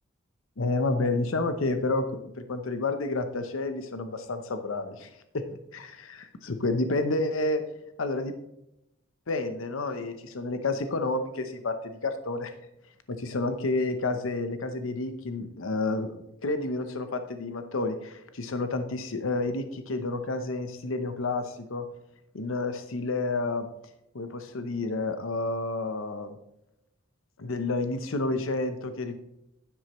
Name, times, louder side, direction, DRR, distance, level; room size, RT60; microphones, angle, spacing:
voice 1, 0.6-5.4 5.7-7.6 8.0-8.3 9.3-12.5 13.1-21.8 22.3-23.7 24.1-26.4 27.4-29.2, left 2 dB, 80° left, 9 dB, 0.8 m, -30 dB
10.0 x 8.0 x 3.1 m, 0.84 s
head